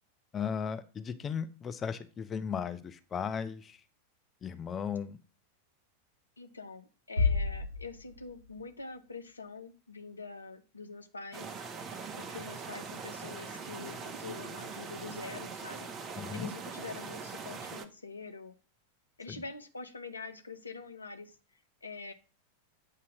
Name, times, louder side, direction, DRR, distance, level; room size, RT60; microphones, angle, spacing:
voice 1, 0.3-3.8 4.4-5.2 16.2-16.5 19.3-19.4, left 7 dB, 20° left, 10 dB, 0.5 m, -36 dB
voice 2, 6.4-11.6 12.2-18.5 19.2-21.4 21.8-22.1, left 4 dB, 75° left, 8 dB, 0.7 m, -45 dB
sound 1, 7.2-9.1, left 4 dB, 80° right, 1.2 m, -31 dB
sound 2, 11.3-17.9, right 5 dB, 30° right, 0.7 m, -42 dB
8.2 x 2.8 x 6.1 m, 0.34 s
figure-of-eight pair, 90°, 0 cm